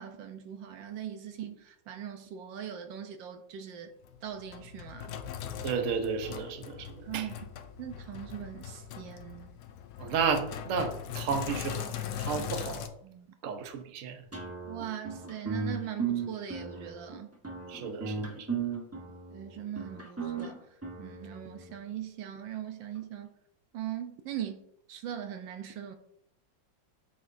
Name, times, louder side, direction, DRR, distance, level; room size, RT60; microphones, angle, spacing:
voice 1, 0.0-3.9 4.2-5.1 7.1-7.5 7.8-9.5 13.0-13.3 14.7-17.3 19.3-20.7 21.0-23.3 23.7-24.6 24.9-25.9, right 10 dB, 80° right, 1.5 m, -40 dB
Sink (filling or washing), 4.0-12.9, left 9 dB, 70° left, 1.2 m, -40 dB
voice 2, 5.6-7.3 10.0-13.0 13.4-14.2 17.7-18.5, right 6 dB, 55° right, 1.0 m, -33 dB
sound 1, 14.3-21.7, right 5 dB, 10° right, 0.8 m, -36 dB
7.4 x 5.9 x 2.6 m
omnidirectional pair, 2.0 m